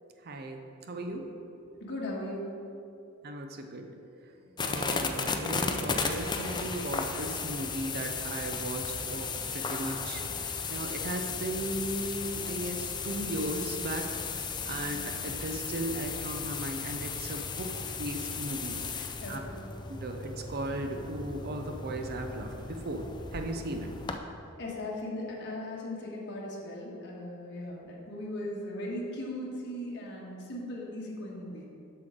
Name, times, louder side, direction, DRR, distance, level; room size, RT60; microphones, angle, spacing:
voice 1, 0.2-0.6 0.9-1.2 3.2-3.9 4.4-9.2 9.5-17.7 18.0-19.4 19.9-23.9, right 1 dB, 45° right, 4 dB, 0.6 m, -37 dB
voice 2, 1.7-2.5 19.2-19.5 24.6-31.7, left 1 dB, 55° left, -3 dB, 1.4 m, -38 dB
sound 1, 4.6-24.2, left 5 dB, 20° left, 0.4 m, -35 dB
7.6 x 6.4 x 3.8 m, 2.7 s
head